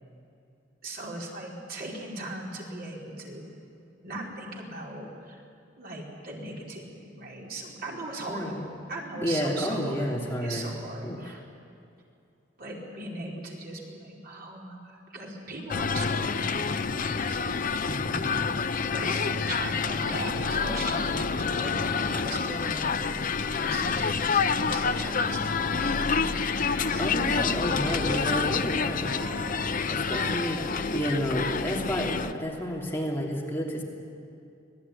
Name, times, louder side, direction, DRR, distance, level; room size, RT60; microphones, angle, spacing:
voice 1, 0.8-3.4 4.0-5.4 5.8-8.5 8.9-10.2 10.4-11.4 12.6-17.6 18.0-18.6 18.9-26.5 26.9-27.2, right 2 dB, 55° right, -2 dB, 5.1 m, -39 dB
voice 2, 8.3-8.7 9.2-10.7 11.0-11.4 17.9-18.5 27.0-29.1 29.9-33.8, equal, 15° left, -2 dB, 3.1 m, -31 dB
sound 1, 15.7-32.3, left 5 dB, 45° left, 0.8 m, -28 dB
Wind instrument woodwind instrument, 27.4-28.5 29.0-29.5 30.1-33.1, right 3 dB, 85° right, 5.4 m, -42 dB
26.0 x 18.5 x 9.8 m, 2.5 s
head